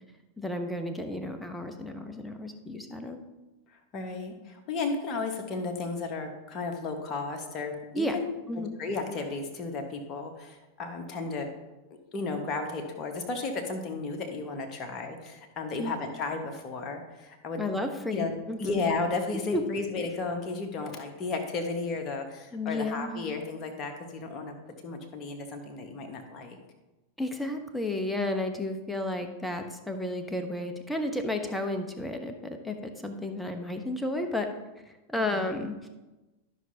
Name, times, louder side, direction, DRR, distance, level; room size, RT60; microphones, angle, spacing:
voice 1, 0.4-3.2 7.9-8.1 8.5-8.8 15.8-15.9 17.6-18.8 19.5-19.6 22.5-23.3 27.2-34.5 35.1-35.9, left 1 dB, 5° left, 5 dB, 0.9 m, -32 dB
voice 2, 3.7-8.2 8.5-11.5 12.1-17.6 18.1-18.3 18.6-24.5 24.8-26.6 35.3-35.4, left 3 dB, 30° left, 4 dB, 1.4 m, -34 dB
13.0 x 6.2 x 2.8 m, 1.1 s
figure-of-eight pair, 90°, 0 cm